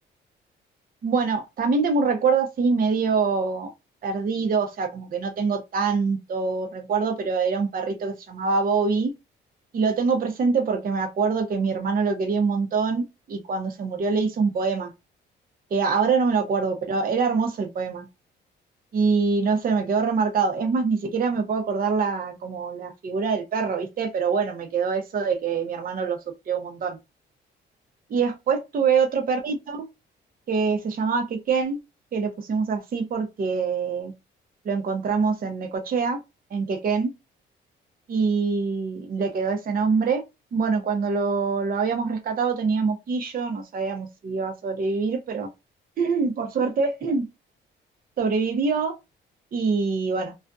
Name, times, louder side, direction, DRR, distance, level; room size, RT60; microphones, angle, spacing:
voice 1, 1.0-3.7 4.0-9.1 9.7-14.9 15.7-18.1 18.9-26.2 26.5-27.0 28.1-29.9 30.5-31.8 32.1-34.1 34.6-36.2 36.5-37.1 38.1-40.2 40.5-45.5 46.0-47.3 48.2-49.0 49.5-50.3, right 5 dB, 45° right, 0.7 m, -24 dB
2.6 x 2.4 x 2.2 m
cardioid pair, 90°, 20 cm